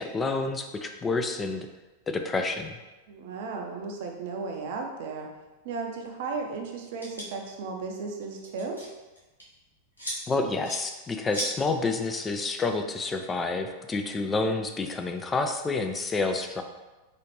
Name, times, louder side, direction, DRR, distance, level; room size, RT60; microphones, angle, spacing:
voice 1, 0.0-1.7 2.1-2.8 10.3-16.6, left 3 dB, 15° left, 6 dB, 0.3 m, -29 dB
voice 2, 3.1-5.3 5.6-8.8, right 4 dB, 50° right, 2 dB, 0.5 m, -35 dB
sound 1, 7.0-7.3 8.2-8.9 9.1-9.4 10.0-10.2 10.6-10.8 11.3-11.5, equal, 80° left, 1.0 m, -34 dB
4.1 x 2.4 x 3.2 m, 1.1 s
figure-of-eight pair, 90°, 0 cm